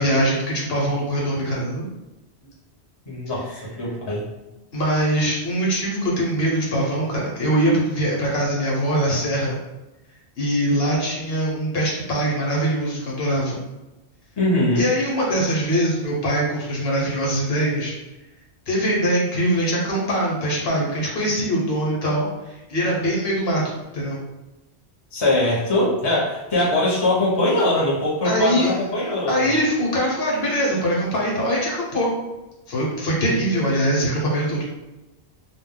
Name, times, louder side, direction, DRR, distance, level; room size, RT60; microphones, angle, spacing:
voice 1, 0.0-1.9 4.7-9.6 10.4-13.6 14.8-17.9 18.7-24.2 28.2-28.7 29.3-32.1 32.7-34.6, equal, 70° left, -3 dB, 1.0 m, -22 dB
voice 2, 3.1-4.3 14.4-14.9 25.1-29.6, left 1 dB, 25° left, -5 dB, 0.7 m, -22 dB
2.3 x 2.2 x 3.6 m, 1.0 s
omnidirectional pair, 1.1 m